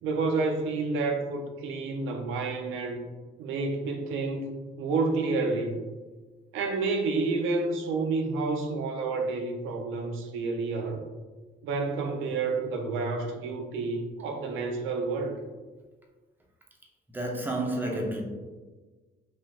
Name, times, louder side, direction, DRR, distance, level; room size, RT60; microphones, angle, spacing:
voice 1, 0.0-3.1 3.4-4.5 4.8-5.8 6.5-11.0 11.6-15.4, right 3 dB, 90° right, 0.4 m, -29 dB
voice 2, 17.1-18.2, right 1 dB, 10° right, 0.6 m, -30 dB
3.2 x 2.7 x 2.3 m
cardioid pair, 90°, 20 cm